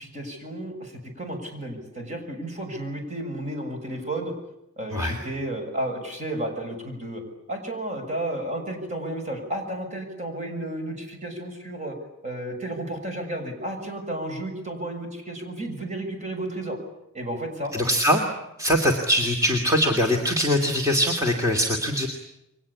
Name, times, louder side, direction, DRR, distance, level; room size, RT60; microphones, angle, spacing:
voice 1, 0.0-4.3 4.8-7.2 7.5-11.9 12.2-16.8 17.1-17.7, right 1 dB, 35° right, 4 dB, 6.7 m, -32 dB
voice 2, 17.7-18.2 18.6-22.1, equal, 15° right, 1 dB, 2.7 m, -22 dB
29.5 x 23.5 x 8.5 m, 0.85 s
head